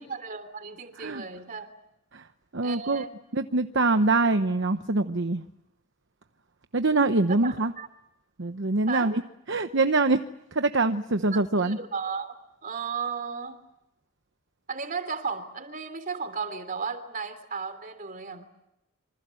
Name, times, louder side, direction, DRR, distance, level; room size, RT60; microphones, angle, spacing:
voice 1, 0.0-1.7 2.6-3.1 7.4-7.9 8.9-9.1 11.3-12.4 12.6-13.6 14.7-18.5, right 5 dB, 40° right, 10 dB, 3.2 m, -35 dB
voice 2, 2.5-3.0 3.3-5.4 6.7-7.7 8.4-9.2 9.5-10.2 10.5-11.8, right 3 dB, 55° right, 9 dB, 1.0 m, -24 dB
27.5 x 25.5 x 7.8 m, 0.87 s
head